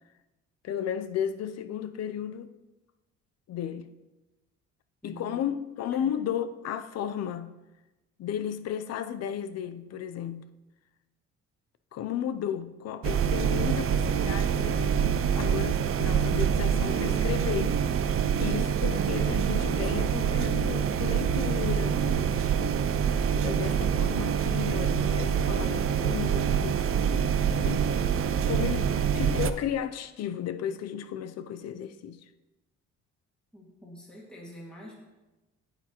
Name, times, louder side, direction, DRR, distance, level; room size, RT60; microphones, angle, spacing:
voice 1, 0.6-2.5 3.5-4.0 5.0-7.5 8.2-10.5 11.9-17.8 18.4-22.3 23.4-26.8 27.6-27.9 28.4-32.2, left 9 dB, 60° left, 0.5 m, -34 dB
voice 2, 5.0-5.4 5.9-6.1 33.5-34.9, equal, 5° left, 2.0 m, -46 dB
sound 1, 13.0-29.5, right 7 dB, 45° right, 0.4 m, -26 dB
8.8 x 8.3 x 3.0 m
cardioid pair, 110°, 30 cm